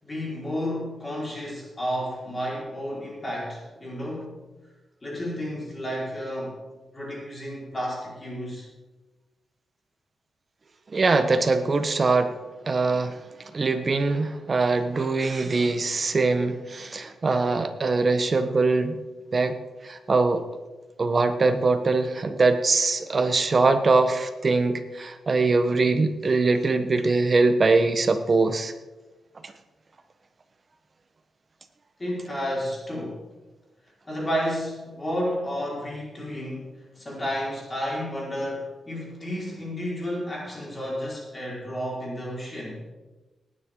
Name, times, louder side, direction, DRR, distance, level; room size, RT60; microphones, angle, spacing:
voice 1, 0.0-4.4 5.0-6.6 6.9-8.7 32.0-33.2 34.0-36.7 36.9-42.8, equal, 25° left, -5 dB, 4.8 m, -31 dB
voice 2, 10.9-12.4 12.7-13.2 13.5-19.0 19.3-19.6 19.8-20.4 21.0-28.7 29.4-29.5, right 3 dB, 40° right, 8 dB, 1.1 m, -22 dB
19.0 x 10.0 x 3.8 m, 1.2 s
wide cardioid pair, 110°, 0 cm